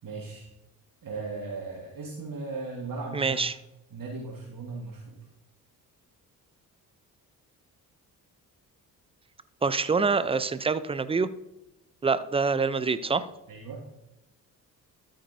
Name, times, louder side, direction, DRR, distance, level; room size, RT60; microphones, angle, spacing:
voice 1, 0.0-0.5 1.0-3.4 3.9-5.2 13.5-13.8, right 3 dB, 45° right, -1 dB, 1.8 m, -37 dB
voice 2, 3.1-3.5 9.6-11.3 12.0-13.3, right 4 dB, 10° right, 14 dB, 0.5 m, -25 dB
13.0 x 8.7 x 2.7 m, 0.90 s
hypercardioid pair, 40°, 47 cm